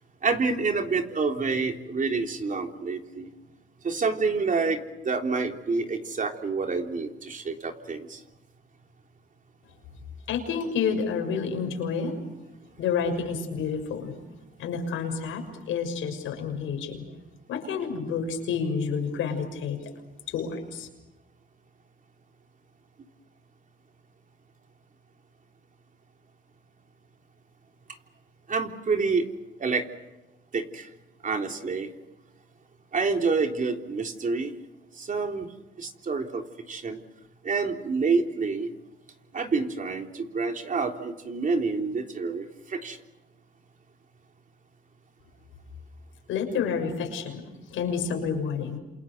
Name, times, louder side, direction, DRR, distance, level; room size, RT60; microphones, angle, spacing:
voice 1, 0.2-3.3 3.8-8.2 28.5-29.2 29.6-29.8 30.5-30.9 31.2-31.9 32.9-34.5 35.0-35.5 35.8-37.0 37.4-38.7 39.3-43.0, right 4 dB, 40° right, 4 dB, 3.6 m, -28 dB
voice 2, 10.3-12.2 12.8-14.1 14.6-17.0 17.5-19.8 20.3-20.9 46.3-47.4 47.7-48.8, left 6 dB, 90° left, 4 dB, 6.4 m, -29 dB
29.0 x 28.0 x 6.8 m, 1.0 s
cardioid pair, 90°, 20 cm